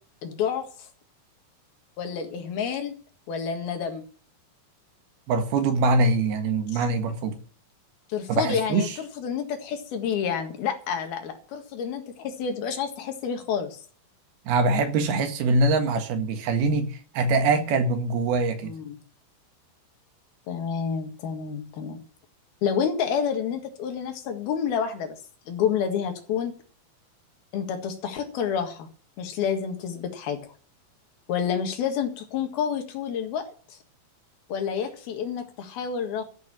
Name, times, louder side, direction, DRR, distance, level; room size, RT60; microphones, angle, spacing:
voice 1, 0.2-0.9 2.0-3.0 3.3-4.0 6.7-6.8 8.1-13.8 18.6-19.0 20.5-22.0 22.6-25.2 25.5-26.6 27.5-28.9 29.2-30.4 31.3-33.8 34.5-36.2, left 7 dB, 85° left, 3.7 m, -29 dB
voice 2, 5.3-7.4 8.3-9.0 14.5-18.8, right 3 dB, 85° right, 3.6 m, -23 dB
13.5 x 6.5 x 9.0 m
omnidirectional pair, 4.3 m